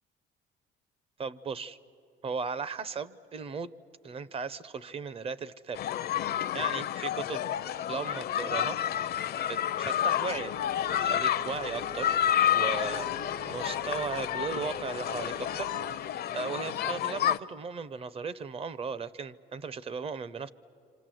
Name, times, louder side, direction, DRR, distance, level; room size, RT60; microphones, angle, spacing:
voice 1, 1.2-1.8 2.2-3.8 4.0-5.8 6.1-7.5 7.9-8.8 9.5-10.5 11.0-12.2 12.5-13.1 13.5-20.5, right 5 dB, 30° right, 17 dB, 0.5 m, -37 dB
sound 1, 5.8-17.4, left 11 dB, 50° left, 0.5 m, -30 dB
sound 2, 10.3-16.0, right 5 dB, 70° right, 1.1 m, -47 dB
27.0 x 26.0 x 7.6 m, 2.7 s
cardioid pair, 160°, 21 cm